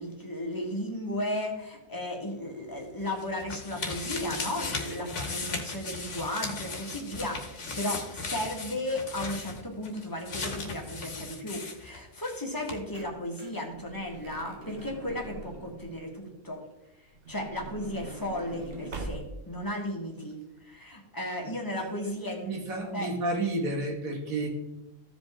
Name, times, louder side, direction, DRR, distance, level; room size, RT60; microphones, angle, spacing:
voice 1, 0.0-16.6 17.3-22.5 22.9-23.1, left 1 dB, 15° left, 0 dB, 1.6 m, -35 dB
sound 1, 2.8-12.4 12.7-12.8, left 3 dB, 60° left, 1.6 m, -37 dB
Truck / Door, 12.9-16.0 17.1-19.6 20.3-20.4 20.6-20.7, right 2 dB, 50° right, 1.1 m, -43 dB
voice 2, 22.4-24.5, right 2 dB, 80° right, 1 dB, 2.2 m, -30 dB
15.0 x 5.1 x 3.7 m, 0.94 s
omnidirectional pair, 1.4 m